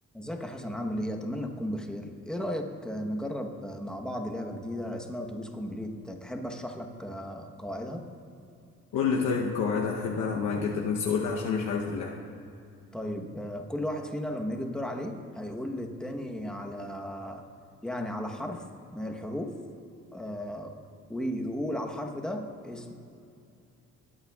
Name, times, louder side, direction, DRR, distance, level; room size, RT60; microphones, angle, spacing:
voice 1, 0.1-8.1 12.9-17.4 17.8-18.6 18.9-19.5 20.1-20.8 21.1-22.9, equal, ahead, 2 dB, 1.0 m, -35 dB
voice 2, 8.9-12.2, left 5 dB, 80° left, -2 dB, 0.9 m, -28 dB
19.5 x 8.8 x 2.4 m, 2.6 s
cardioid pair, 90°, 30 cm